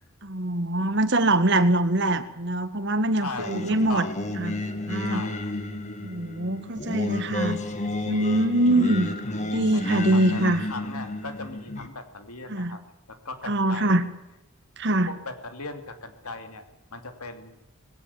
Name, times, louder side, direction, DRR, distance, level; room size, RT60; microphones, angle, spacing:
voice 1, 0.2-4.1 4.4-4.6 4.9-5.2 6.0-7.6 8.1-9.1 9.5-10.6 12.5-12.8 13.5-14.0 14.8-15.1, right 1 dB, 50° right, 11 dB, 1.7 m, -23 dB
voice 2, 3.2-3.6 3.9-4.2 5.1-5.5 9.7-12.8 13.1-14.0 15.1-16.6 16.9-17.6, left 3 dB, 90° left, 8 dB, 2.9 m, -38 dB
Singing, 3.4-11.9, left 1 dB, 30° left, 1.9 m, -31 dB
20.0 x 17.0 x 8.6 m, 0.91 s
head